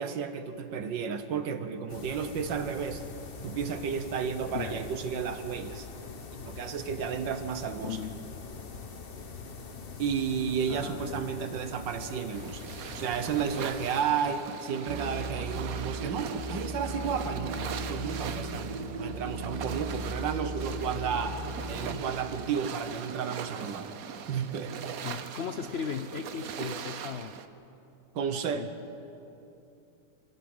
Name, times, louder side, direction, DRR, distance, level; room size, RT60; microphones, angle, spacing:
voice 1, 0.0-3.1 3.4-5.9 6.4-8.0 10.0-21.4 21.7-23.9 24.3-24.7 28.2-28.7, right 7 dB, 75° right, 9 dB, 1.8 m, -32 dB
sound 1, 1.9-14.0, left 4 dB, 35° left, 1.1 m, -43 dB
voice 2, 7.8-8.2 10.7-11.3 21.8-22.0 25.0-27.3 28.5-28.7, left 7 dB, 80° left, 9 dB, 0.5 m, -37 dB
sound 2, 12.3-27.5, right 7 dB, 60° right, 1.2 m, -41 dB
sound 3, 14.9-22.0, right 2 dB, 25° right, 1.4 m, -37 dB
25.0 x 15.5 x 7.9 m, 2.8 s
omnidirectional pair, 2.0 m